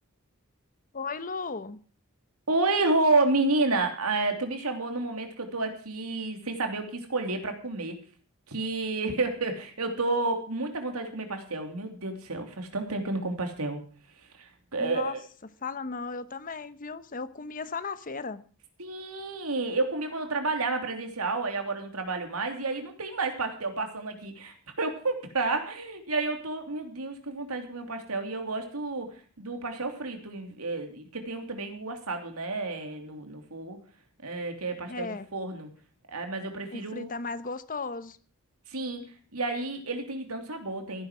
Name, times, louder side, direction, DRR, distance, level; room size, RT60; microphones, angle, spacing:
voice 1, 0.9-1.8 14.8-15.2 15.6-18.4 34.9-35.3 36.7-38.2, left 4 dB, 40° left, 14 dB, 0.9 m, -35 dB
voice 2, 2.5-8.0 8.5-13.8 14.4-15.2 18.8-29.1 29.4-33.8 34.2-35.7 36.1-37.1 38.7-39.0 39.3-41.1, right 3 dB, 85° right, 5 dB, 3.1 m, -30 dB
15.5 x 10.5 x 6.3 m, 0.42 s
head